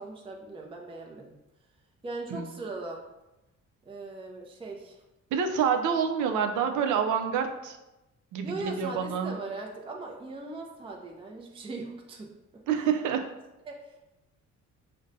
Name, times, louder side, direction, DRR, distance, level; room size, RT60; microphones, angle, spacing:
voice 1, 0.0-1.3 2.0-3.0 3.9-5.0 8.4-12.6 13.7-14.0, right 3 dB, 20° right, 0 dB, 0.5 m, -39 dB
voice 2, 5.3-7.8 8.3-9.4 12.7-13.3, right 7 dB, 85° right, 6 dB, 0.5 m, -27 dB
5.1 x 2.1 x 2.6 m, 1.0 s
cardioid pair, 90°, 30 cm